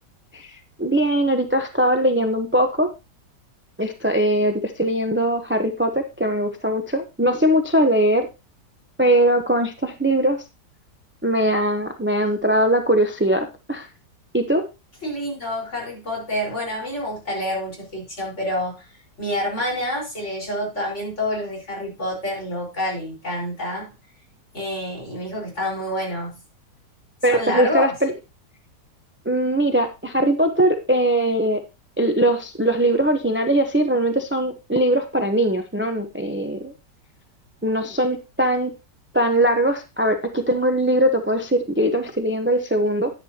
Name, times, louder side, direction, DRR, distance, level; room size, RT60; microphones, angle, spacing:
voice 1, 0.3-2.9 3.8-8.3 9.0-10.4 11.2-13.9 14.3-14.6 27.2-28.1 29.2-31.6 32.0-36.7 37.6-38.7 39.1-43.1, right 1 dB, 15° right, 6 dB, 0.4 m, -21 dB
voice 2, 15.0-18.9 19.2-23.9 24.5-26.3 27.3-27.9, left 1 dB, 40° left, -3 dB, 5.0 m, -28 dB
10.5 x 10.5 x 2.9 m, 0.27 s
omnidirectional pair, 1.9 m